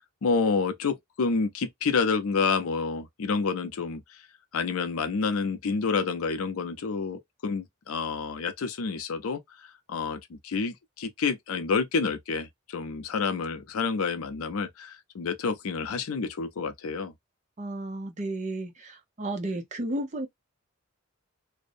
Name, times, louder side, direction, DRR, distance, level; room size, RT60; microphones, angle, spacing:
voice 1, 0.2-4.0 4.5-9.4 9.9-17.1, left 4 dB, 90° left, 0.5 m, -28 dB
voice 2, 17.6-20.3, right 1 dB, 35° right, 0.6 m, -33 dB
2.5 x 2.0 x 2.5 m
head